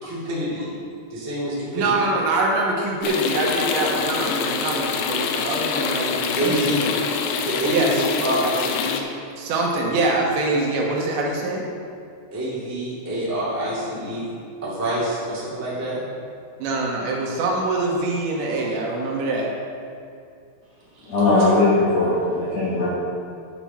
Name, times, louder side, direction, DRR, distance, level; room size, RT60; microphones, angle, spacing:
voice 1, 0.0-0.7 1.1-2.1 6.3-6.8 7.4-9.0 12.3-14.3 14.6-16.0 20.9-21.5, right 1 dB, 25° right, -8 dB, 0.3 m, -27 dB
voice 2, 1.7-6.9 7.7-7.9 9.4-11.6 16.6-19.5, right 2 dB, 75° right, -2 dB, 3.2 m, -24 dB
sound 1, 3.0-9.0, left 6 dB, 85° left, 3.1 m, -25 dB
voice 3, 21.1-22.9, left 2 dB, 65° left, -9 dB, 1.6 m, -19 dB
10.5 x 6.9 x 5.8 m, 2.4 s
omnidirectional pair, 5.6 m